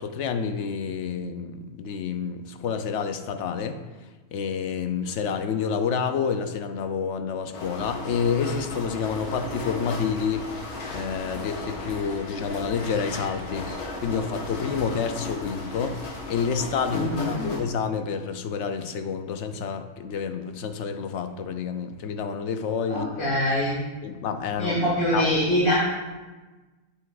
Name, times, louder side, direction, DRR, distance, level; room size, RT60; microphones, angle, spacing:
voice 1, 0.0-3.8 4.3-10.5 10.9-13.7 14.0-16.0 16.3-23.3 24.0-24.8 25.1-25.3, left 6 dB, 65° left, 8 dB, 0.7 m, -29 dB
sound 1, 7.5-17.6, left 2 dB, 85° left, 1.7 m, -35 dB
voice 2, 16.9-17.4 22.9-23.8 24.6-25.9, equal, 45° left, -8 dB, 2.1 m, -24 dB
9.3 x 8.1 x 2.4 m, 1.2 s
omnidirectional pair, 1.6 m